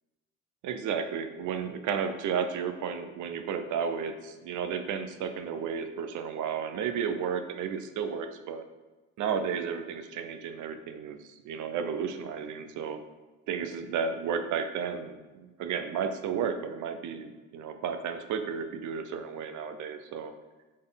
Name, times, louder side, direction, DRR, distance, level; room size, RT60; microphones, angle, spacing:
voice 1, 0.6-8.6 9.2-13.0 13.5-20.3, right 6 dB, 75° right, 8 dB, 0.7 m, -33 dB
7.6 x 4.3 x 3.9 m, 1.2 s
cardioid pair, 90°, 30 cm